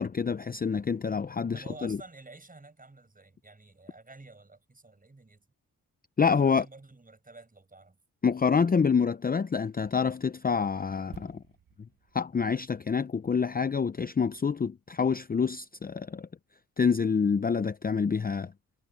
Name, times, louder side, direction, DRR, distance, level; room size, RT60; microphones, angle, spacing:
voice 1, 0.0-2.0 6.2-6.6 8.2-11.4 12.1-16.3 16.8-18.5, left 6 dB, 25° left, 0.6 m, -27 dB
voice 2, 1.5-5.5 6.2-8.0, right 3 dB, 25° right, 7.0 m, -50 dB
sound 1, 11.1-14.8 15.0-15.2, right 8 dB, 65° right, 1.9 m, -55 dB
cardioid pair, 65°, 36 cm